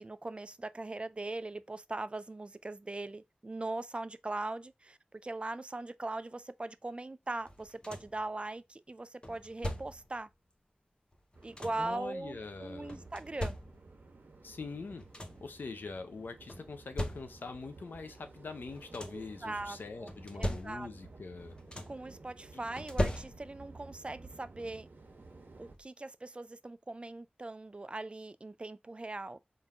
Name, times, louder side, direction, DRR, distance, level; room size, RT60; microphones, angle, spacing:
voice 1, 0.0-10.3 11.4-13.5 19.1-20.9 21.9-24.9 25.6-29.4, right 2 dB, 35° right, 0.4 m, -40 dB
sound 1, 7.5-8.3 9.2-10.2 11.1-12.0 12.9-14.1 14.7-14.8 15.0-15.6 16.5-17.6 18.6-19.4 20.1-21.1 21.4-22.1 22.8-23.8 25.1-25.2 25.7-25.9, left 1 dB, 30° left, 0.9 m, -39 dB
sound 2, 11.3-25.7, right 3 dB, 75° right, 1.0 m, -54 dB
voice 2, 11.8-13.0 14.4-15.0 15.4-21.5 22.5-22.6, left 4 dB, 85° left, 0.7 m, -43 dB
3.9 x 2.7 x 4.7 m
wide cardioid pair, 55°, 3 cm